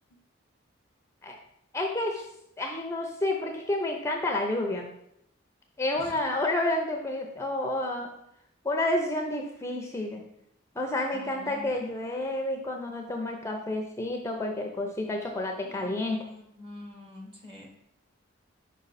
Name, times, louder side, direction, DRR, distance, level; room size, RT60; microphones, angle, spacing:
voice 1, 1.7-2.3 2.6-4.9 5.8-8.1 8.6-10.2 10.7-16.2, left 1 dB, 15° left, 2 dB, 0.5 m, -30 dB
voice 2, 11.1-12.4 15.6-17.7, left 2 dB, 25° right, 1 dB, 1.2 m, -46 dB
5.4 x 5.2 x 4.1 m, 0.75 s
head